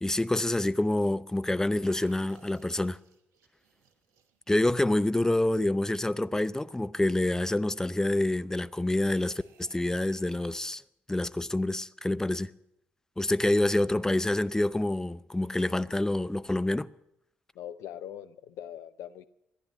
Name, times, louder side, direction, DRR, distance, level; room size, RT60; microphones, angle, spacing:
voice 1, 0.0-3.0 4.5-10.8 11.1-12.5 13.2-16.9, left 1 dB, 10° left, 0.6 m, -27 dB
sound 1, 1.8-5.0 8.8-10.6, right 6 dB, 70° right, 1.2 m, -60 dB
voice 2, 17.5-19.3, left 10 dB, 65° left, 0.7 m, -42 dB
14.5 x 10.5 x 9.1 m
hypercardioid pair, 45°, 5 cm